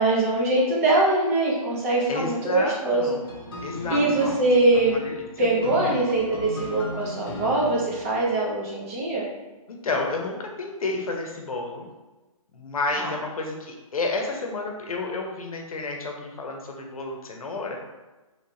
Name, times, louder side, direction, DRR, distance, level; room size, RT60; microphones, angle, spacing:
voice 1, 0.0-3.1 3.9-5.0 5.4-9.3 13.0-13.1, right 2 dB, 25° right, -4 dB, 0.6 m, -22 dB
voice 2, 2.1-3.2 3.6-4.4 5.0-5.4 5.7-5.9 9.7-11.9 12.5-17.8, left 3 dB, 80° left, 1 dB, 0.8 m, -31 dB
sound 1, 3.2-8.7, left 1 dB, 40° left, 0.7 m, -36 dB
3.1 x 3.1 x 2.7 m, 1.1 s
hypercardioid pair, 160°, 18 cm